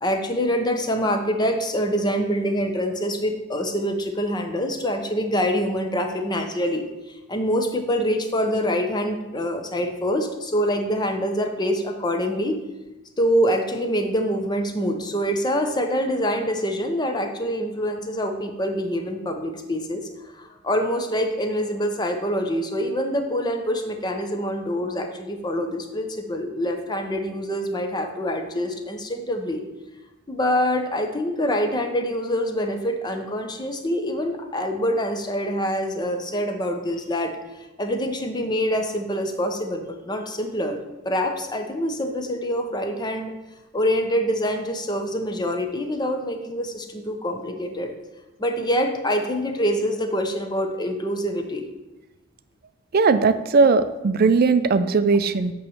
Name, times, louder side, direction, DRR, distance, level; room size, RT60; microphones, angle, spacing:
voice 1, 0.0-12.6 13.2-29.6 30.3-40.8 41.0-43.3 43.7-47.9 48.4-51.6, equal, 20° left, 5 dB, 0.7 m, -25 dB
voice 2, 52.9-55.5, right 4 dB, 45° right, 11 dB, 0.4 m, -18 dB
8.8 x 3.1 x 6.3 m, 1.1 s
head